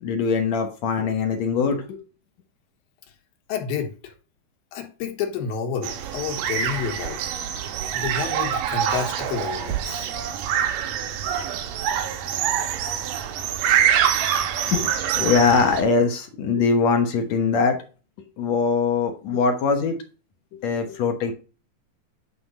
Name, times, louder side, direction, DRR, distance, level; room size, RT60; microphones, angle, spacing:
voice 1, 0.0-2.0 14.7-14.9 15.2-17.8 18.4-20.0 20.5-21.3, left 5 dB, 65° left, 2.0 m, -22 dB
voice 2, 3.5-4.1 4.7-7.2 7.9-10.1, left 6 dB, 85° left, 3.2 m, -30 dB
sound 1, 5.8-15.8, right 9 dB, 75° right, 2.5 m, -25 dB
9.8 x 3.8 x 5.2 m
omnidirectional pair, 4.1 m